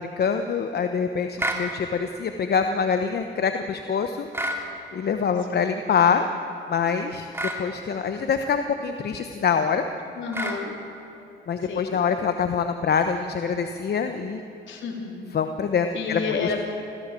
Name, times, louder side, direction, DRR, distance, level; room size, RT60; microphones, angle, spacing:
voice 1, 0.0-4.3 4.9-6.2 6.7-7.3 7.6-9.8 11.5-14.4 15.3-16.2, left 6 dB, 55° left, 7 dB, 1.1 m, -25 dB
sound 1, 1.4-1.7 4.3-4.6 7.3-7.6 10.3-10.6, right 1 dB, 10° right, 2.9 m, -28 dB
voice 2, 10.2-10.7 11.6-12.0 14.6-15.3 15.9-16.6, left 5 dB, 70° left, 1 dB, 4.0 m, -30 dB
27.0 x 15.5 x 7.7 m, 2.8 s
cardioid pair, 90°, 20 cm